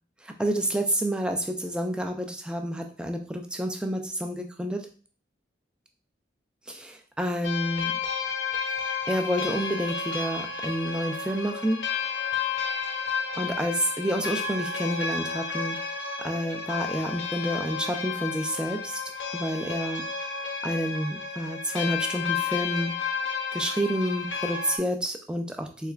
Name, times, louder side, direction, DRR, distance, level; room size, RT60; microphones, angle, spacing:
voice 1, 0.2-4.8 6.7-8.0 9.1-11.8 13.3-15.8 16.2-19.0 19.3-20.0 20.6-23.0 23.5-25.9, equal, 5° right, 4 dB, 0.3 m, -29 dB
sound 1, 7.4-24.8, left 5 dB, 85° left, 0.6 m, -32 dB
3.8 x 3.3 x 2.4 m, 0.41 s
head